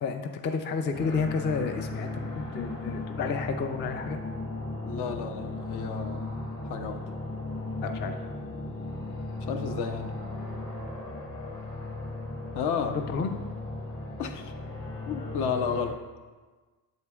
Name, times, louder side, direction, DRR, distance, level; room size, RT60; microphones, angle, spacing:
voice 1, 0.0-4.2 7.8-8.2 12.9-13.3, left 5 dB, 25° left, 6 dB, 0.3 m, -31 dB
sound 1, 0.9-15.9, left 2 dB, 45° left, 1.8 m, -36 dB
voice 2, 4.8-6.3 6.7-7.0 9.5-10.1 12.5-13.0 14.2-14.5 15.1-16.0, left 6 dB, 60° left, 7 dB, 0.7 m, -32 dB
8.0 x 7.2 x 2.3 m, 1.3 s
cardioid pair, 115°, 44 cm